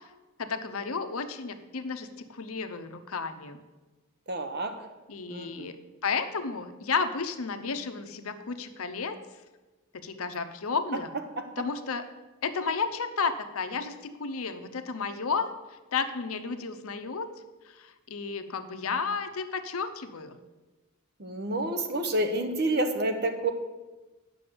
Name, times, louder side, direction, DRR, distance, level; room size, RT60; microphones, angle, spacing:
voice 1, 0.4-3.6 5.1-5.8 6.0-9.2 9.9-11.1 11.6-12.0 12.4-15.5 15.9-17.3 17.7-20.4, left 5 dB, 80° left, 9 dB, 0.7 m, -32 dB
voice 2, 4.3-4.9 5.3-5.7 11.4-11.5 21.2-23.5, right 1 dB, 45° right, 7 dB, 0.9 m, -29 dB
8.6 x 6.2 x 6.9 m, 1.2 s
head